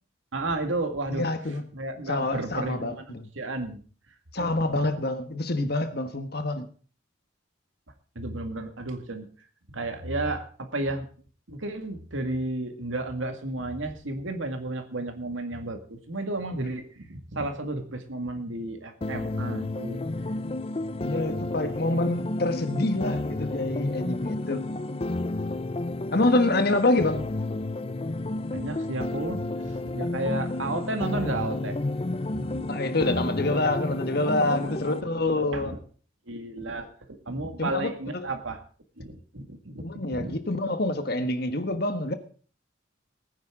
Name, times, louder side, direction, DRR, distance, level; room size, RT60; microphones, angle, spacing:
voice 1, 0.3-1.3 1.7-3.8 4.4-4.5 4.8-4.9 8.2-9.3 9.7-11.1 11.5-20.0 28.5-31.8 32.3-32.8 34.6-35.8 36.3-38.6 39.0-39.9 40.1-40.3, right 2 dB, 85° right, 2.1 m, -33 dB
voice 2, 1.1-1.6 2.1-3.3 4.3-6.7 21.0-24.6 26.1-27.3 32.7-35.7 37.6-38.3 39.8-42.1, left 2 dB, 55° left, 1.5 m, -26 dB
sound 1, 19.0-35.0, left 2 dB, 30° left, 0.5 m, -31 dB
20.5 x 9.6 x 3.8 m
head